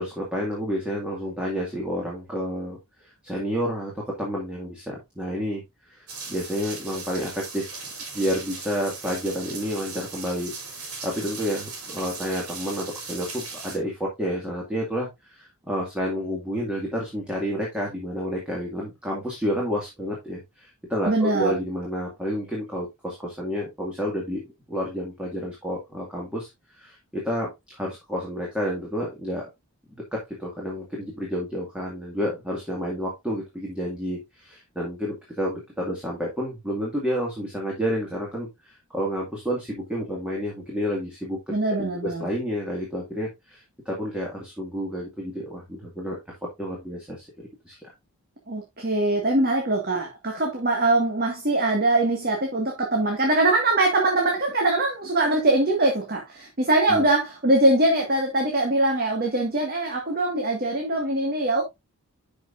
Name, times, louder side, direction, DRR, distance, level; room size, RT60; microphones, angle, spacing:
voice 1, 0.0-6.0 6.3-7.8 8.1-24.4 24.7-29.4 30.1-46.2 46.6-47.9 56.9-57.1, equal, 5° right, 2.0 m, -30 dB
sound 1, 6.1-13.8, right 4 dB, 85° right, 3.7 m, -38 dB
voice 2, 21.1-21.6 41.5-42.3 48.5-61.6, right 2 dB, 45° right, 1.8 m, -22 dB
11.0 x 5.6 x 2.6 m
head